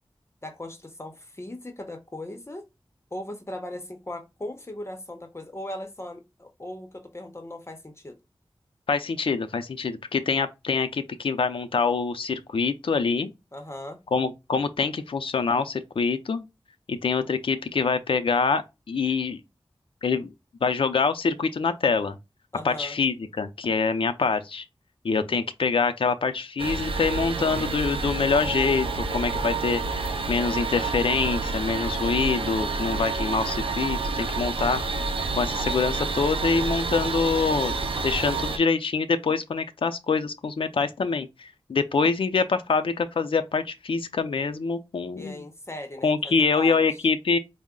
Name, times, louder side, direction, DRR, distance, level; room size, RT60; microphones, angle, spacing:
voice 1, 0.4-2.6 3.1-8.2 13.5-14.0 22.5-23.0 45.2-46.9, left 1 dB, 30° left, 0.7 m, -38 dB
voice 2, 8.9-13.3 14.1-16.5 16.9-19.4 20.0-20.3 20.6-22.2 22.6-24.6 25.0-34.8 35.3-37.8 38.0-45.4 46.0-47.4, left 4 dB, 75° left, 0.4 m, -25 dB
sound 1, 26.6-38.6, right 3 dB, 85° right, 0.5 m, -29 dB
4.6 x 2.0 x 3.6 m
wide cardioid pair, 80°, 9 cm